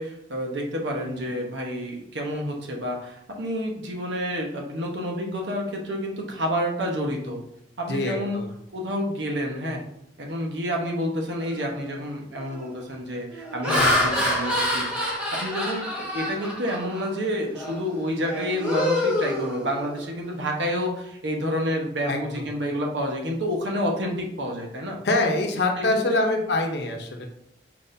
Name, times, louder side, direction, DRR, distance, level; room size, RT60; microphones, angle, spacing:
voice 1, 0.0-7.4 7.8-8.4 8.7-9.8 10.2-14.9 15.3-25.0 25.8-26.2, equal, 85° right, 0 dB, 1.0 m, -29 dB
voice 2, 7.9-8.5 13.7-14.0 22.1-22.4 25.0-27.3, left 2 dB, 65° left, 3 dB, 0.8 m, -25 dB
Laughter, 11.5-11.8 12.4-12.7 13.3-17.1 17.5-17.8 18.2-20.1, left 1 dB, 5° right, 1.0 m, -26 dB
4.7 x 4.1 x 2.7 m, 0.75 s
head